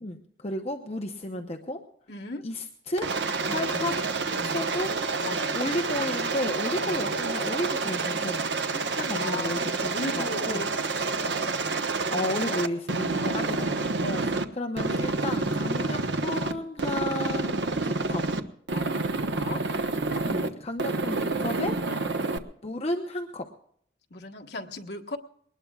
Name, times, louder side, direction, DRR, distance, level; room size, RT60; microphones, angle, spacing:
voice 1, 0.0-1.8 2.4-3.1 3.5-4.0 4.5-5.0 5.3-8.5 8.9-10.7 12.1-13.7 14.2-18.2 20.3-21.8 22.6-23.4, left 1 dB, 35° left, 3 dB, 0.9 m, -33 dB
voice 2, 2.1-2.5 3.4-4.0 4.3-4.6 5.2-5.6 6.8-7.2 8.7-11.6 12.3-12.6 13.2-13.7 14.0-14.4 15.8-16.1 18.7-19.7 21.8-22.3 24.1-25.2, left 2 dB, 75° left, 2 dB, 1.4 m, -38 dB
Aircraft, 3.0-14.4 14.8-16.5 16.8-18.4 18.7-20.5 20.8-22.4, right 3 dB, 85° right, 1.1 m, -28 dB
22.5 x 19.5 x 2.4 m, 0.65 s
head